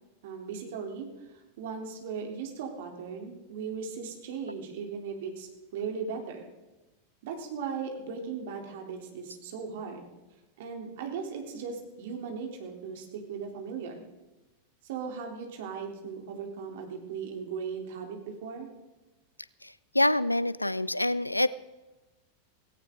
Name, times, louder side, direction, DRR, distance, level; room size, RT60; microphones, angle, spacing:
voice 1, 0.2-1.1 1.6-6.5 7.2-10.1 10.6-14.0 14.8-18.7, right 6 dB, 55° right, 2 dB, 3.4 m, -37 dB
voice 2, 19.6-21.5, left 1 dB, 85° left, 20 dB, 0.4 m, -26 dB
17.5 x 17.5 x 3.8 m, 1.1 s
figure-of-eight pair, 90°, 0 cm